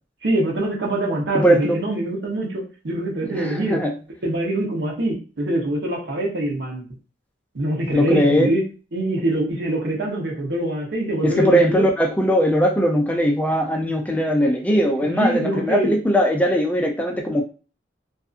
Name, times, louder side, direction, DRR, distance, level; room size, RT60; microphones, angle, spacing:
voice 1, 0.2-3.8 4.2-6.8 7.5-8.6 8.9-11.9 15.2-15.9, right 1 dB, 65° right, 0.9 m, -24 dB
voice 2, 1.3-1.8 3.2-3.9 7.9-8.5 11.2-17.4, equal, 10° left, 0.4 m, -19 dB
2.5 x 2.4 x 2.4 m
head